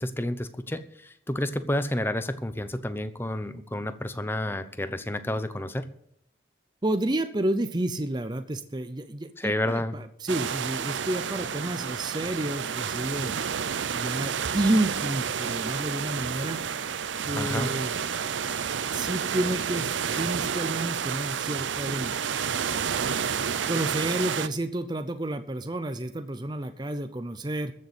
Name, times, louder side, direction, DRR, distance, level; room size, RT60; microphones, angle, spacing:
voice 1, 0.0-5.9 9.4-10.0 17.4-17.7, left 1 dB, 10° left, 11 dB, 0.8 m, -30 dB
voice 2, 6.8-13.3 13.9-16.6 17.2-18.2 18.9-19.9 20.2-22.3 23.7-27.7, right 1 dB, 25° right, 9 dB, 0.6 m, -30 dB
sound 1, 10.3-24.5, right 7 dB, 85° right, 0.6 m, -30 dB
14.0 x 6.6 x 8.0 m, 0.73 s
head